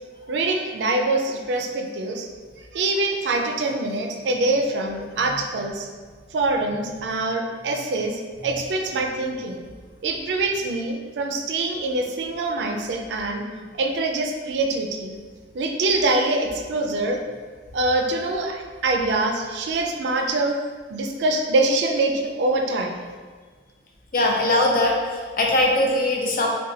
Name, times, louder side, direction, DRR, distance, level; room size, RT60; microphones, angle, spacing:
voice 1, 0.3-2.3 2.7-5.9 6.3-9.6 10.0-13.5 13.7-15.1 15.5-17.2 17.7-20.6 20.9-23.0, right 2 dB, 75° right, 3 dB, 0.4 m, -24 dB
voice 2, 24.1-26.5, left 1 dB, 50° left, 0 dB, 0.5 m, -21 dB
3.9 x 2.2 x 2.7 m, 1.5 s
head